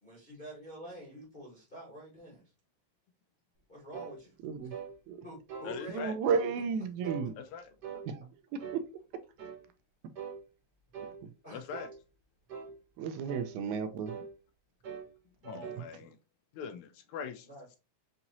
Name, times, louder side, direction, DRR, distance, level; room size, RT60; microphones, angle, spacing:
voice 1, 0.0-2.4 3.7-4.4 4.6-4.7 5.2-6.3 11.4-11.7 17.4-17.8, right 1 dB, 35° left, 0.8 m, -47 dB
sound 1, 3.9-4.2 4.7-4.9 5.5-5.7 6.3-6.5 7.0-7.3 7.8-8.1 8.6-8.8 9.4-9.6 10.1-10.4 10.9-11.2 11.7-12.0 12.5-12.7 13.3-13.5 14.1-14.3 14.8-15.1 15.4-15.9, right 6 dB, 60° right, 1.1 m, -42 dB
voice 2, 4.4-4.7 5.1-5.2 5.9-7.4 8.1-8.2 8.7-8.8 13.0-14.1 15.8-15.9, right 6 dB, 80° right, 1.9 m, -32 dB
voice 3, 5.6-6.1 7.4-7.6 11.5-11.9 15.4-16.2 16.6-17.5, left 6 dB, 80° left, 1.8 m, -41 dB
5.7 x 2.9 x 2.6 m
omnidirectional pair, 3.5 m